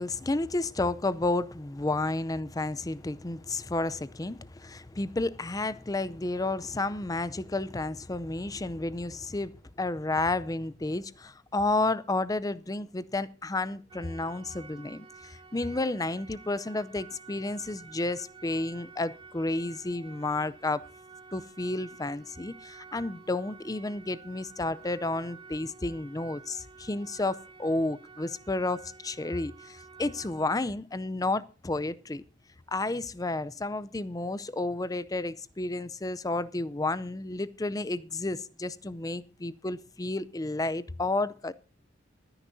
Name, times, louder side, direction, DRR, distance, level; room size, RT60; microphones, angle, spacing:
voice 1, 0.0-20.8 21.3-32.2 32.7-41.5, left 2 dB, 20° left, 0.5 m, -31 dB
sound 1, 13.9-30.5, right 4 dB, 25° right, 0.9 m, -51 dB
23.5 x 9.9 x 2.7 m
head